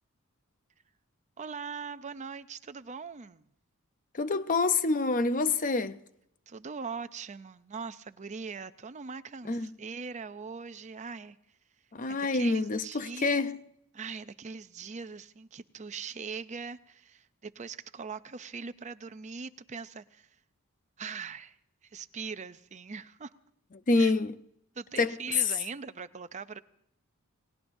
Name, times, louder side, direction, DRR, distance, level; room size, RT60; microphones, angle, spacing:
voice 1, 1.4-3.5 6.5-11.4 12.1-13.4 13.9-20.3 21.0-21.6 21.8-23.3 23.9-24.1 24.7-26.6, right 5 dB, 35° right, 0.5 m, -41 dB
voice 2, 4.1-6.0 9.5-9.7 11.9-13.6 23.9-24.3 25.0-25.2, left 3 dB, 40° left, 0.6 m, -27 dB
29.0 x 18.5 x 2.6 m
head